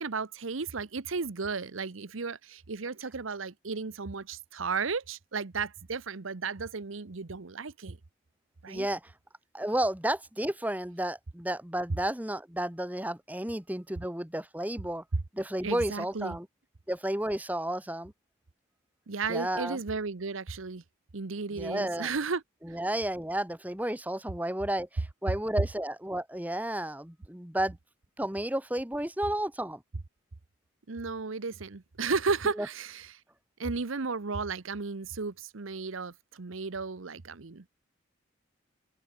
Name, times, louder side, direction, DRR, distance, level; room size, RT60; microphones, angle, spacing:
voice 1, 0.0-8.0 8.6-8.9 15.6-16.4 19.1-20.8 21.1-22.4 22.7-22.8 30.9-33.1 33.6-37.6, right 4 dB, 80° right, 0.9 m, -34 dB
voice 2, 8.7-9.1 9.5-15.0 15.3-16.5 16.9-18.1 19.3-19.8 21.5-22.1 22.6-27.8 28.2-29.8 32.6-32.7, right 1 dB, 10° right, 1.4 m, -32 dB
open air
head